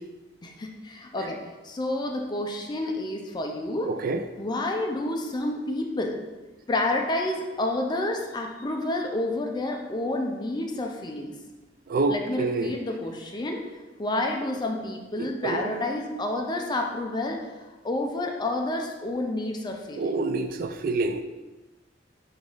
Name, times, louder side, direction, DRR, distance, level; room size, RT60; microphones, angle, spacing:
voice 1, 0.4-3.9 4.4-6.2 6.7-11.4 12.1-13.6 14.0-20.1, left 2 dB, 25° left, 2 dB, 0.4 m, -29 dB
voice 2, 3.9-4.2 11.9-12.8 15.4-15.7 20.0-21.2, right 3 dB, 50° right, 8 dB, 0.3 m, -27 dB
5.1 x 2.5 x 3.7 m, 1.2 s
head